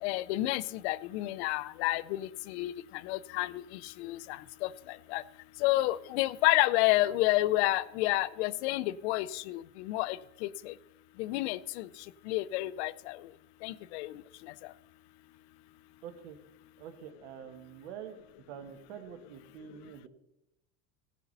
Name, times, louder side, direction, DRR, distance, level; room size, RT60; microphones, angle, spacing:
voice 1, 0.0-2.7 3.0-5.2 5.6-10.7 11.2-11.9 12.3-13.2 13.6-14.1, left 17 dB, 80° left, 17 dB, 0.6 m, -30 dB
voice 2, 16.0-16.4 16.8-18.2 18.5-20.1, right 8 dB, 85° right, 7 dB, 1.3 m, -46 dB
16.0 x 8.3 x 4.0 m, 0.90 s
cardioid pair, 175°, 33 cm